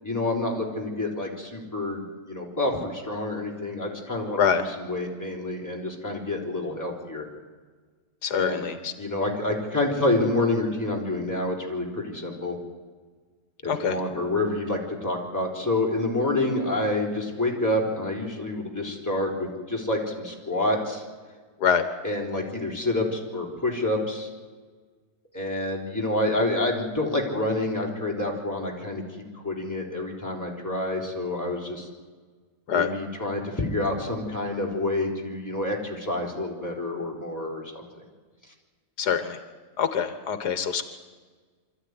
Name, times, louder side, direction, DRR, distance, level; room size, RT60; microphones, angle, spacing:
voice 1, 0.0-7.3 8.3-8.6 9.0-12.6 13.6-21.0 22.0-24.3 25.3-29.0 29.4-31.9 32.7-38.0, left 2 dB, 10° left, -1 dB, 4.1 m, -28 dB
voice 2, 8.2-8.9 13.7-14.0 21.6-21.8 32.7-32.9 39.0-39.4 39.8-40.8, left 7 dB, 80° left, 10 dB, 1.7 m, -24 dB
25.0 x 14.0 x 9.7 m, 1.5 s
omnidirectional pair, 1.7 m